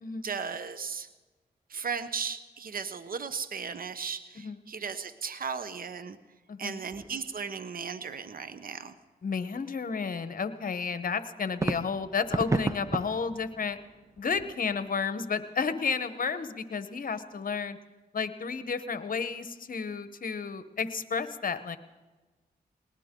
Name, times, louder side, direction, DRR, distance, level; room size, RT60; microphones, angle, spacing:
voice 1, 0.2-1.1 1.7-6.2 6.6-8.9, right 6 dB, 55° right, 12 dB, 1.0 m, -36 dB
voice 2, 6.5-6.8 9.2-13.8 14.2-17.8 18.1-21.8, left 5 dB, 55° left, 12 dB, 1.1 m, -32 dB
sound 1, 6.9-7.4 7.7-7.8 11.6-14.9, right 3 dB, 20° right, 0.5 m, -34 dB
19.5 x 19.5 x 3.8 m, 1.2 s
cardioid pair, 55°, 17 cm